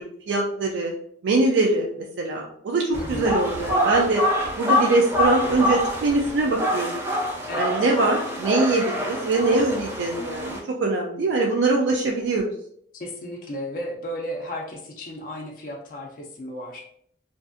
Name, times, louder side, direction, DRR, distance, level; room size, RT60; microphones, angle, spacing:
voice 1, 0.3-0.9 1.2-4.2 4.6-7.0 7.6-12.5, right 2 dB, 85° right, 0 dB, 0.3 m, -23 dB
voice 2, 2.9-3.3 7.5-7.9 12.9-16.8, equal, 50° left, 0 dB, 0.4 m, -34 dB
sound 1, 2.9-10.6, equal, 10° right, 0.5 m, -26 dB
2.5 x 2.3 x 2.4 m, 0.66 s
head